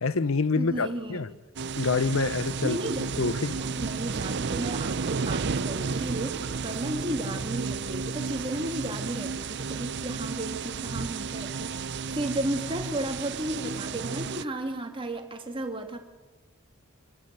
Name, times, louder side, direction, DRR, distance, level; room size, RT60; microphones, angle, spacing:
voice 1, 0.0-1.3 1.7-2.8 3.2-3.6, left 4 dB, 80° left, 0.8 m, -26 dB
voice 2, 0.6-1.2 2.6-3.3 3.5-16.0, right 1 dB, 25° right, 2.3 m, -34 dB
sound 1, 1.6-14.4, right 5 dB, 55° right, 0.6 m, -32 dB
25.5 x 15.5 x 8.2 m
head